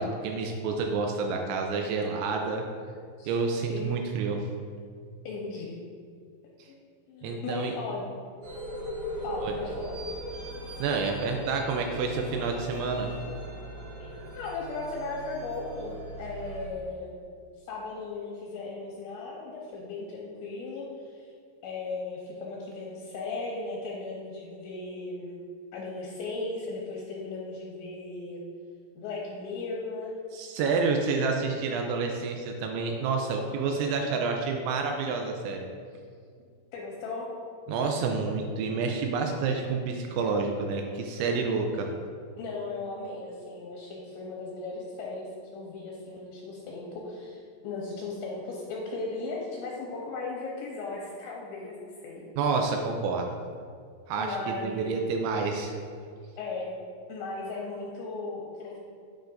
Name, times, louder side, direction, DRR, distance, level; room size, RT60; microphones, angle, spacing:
voice 1, 0.0-2.7 3.2-4.4 7.2-7.7 9.4-9.5 10.8-13.1 30.3-35.6 37.7-41.9 52.4-53.3 54.1-55.7, right 4 dB, 80° right, 3 dB, 2.9 m, -29 dB
voice 2, 5.3-5.8 7.1-8.0 9.2-10.0 14.0-17.2 17.6-21.3 21.6-25.4 25.7-28.4 29.0-30.1 36.7-37.3 42.4-52.3 54.2-54.9 56.4-56.7 57.1-58.8, left 3 dB, 75° left, -3 dB, 2.9 m, -37 dB
sound 1, 8.4-16.7, equal, 60° right, 2.9 m, -39 dB
9.3 x 9.1 x 2.6 m, 2.2 s
omnidirectional pair, 5.6 m